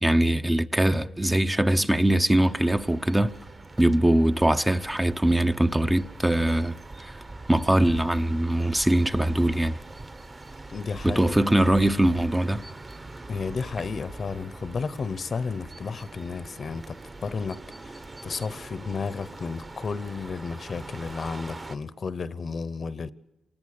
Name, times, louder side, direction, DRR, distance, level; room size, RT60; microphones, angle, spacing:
voice 1, 0.0-3.4 3.8-6.8 7.0-7.1 7.5-9.7 11.0-12.6, right 1 dB, 10° right, 0.7 m, -22 dB
sound 1, 2.5-21.8, right 2 dB, 25° right, 1.2 m, -43 dB
voice 2, 10.7-11.2 13.3-17.0 17.2-17.6 17.9-23.1, left 5 dB, 45° left, 0.9 m, -32 dB
27.5 x 19.5 x 6.7 m
cardioid pair, 115°, 0 cm